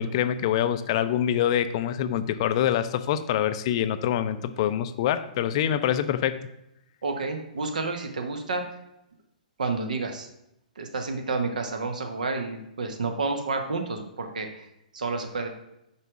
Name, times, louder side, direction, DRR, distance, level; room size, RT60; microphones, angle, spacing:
voice 1, 0.0-6.4, left 10 dB, 40° left, 11 dB, 0.4 m, -25 dB
voice 2, 7.0-8.7 9.6-10.3 10.8-14.7 14.9-15.5, right 3 dB, 70° right, 5 dB, 1.1 m, -30 dB
5.6 x 4.9 x 4.8 m, 0.84 s
figure-of-eight pair, 120°, 4 cm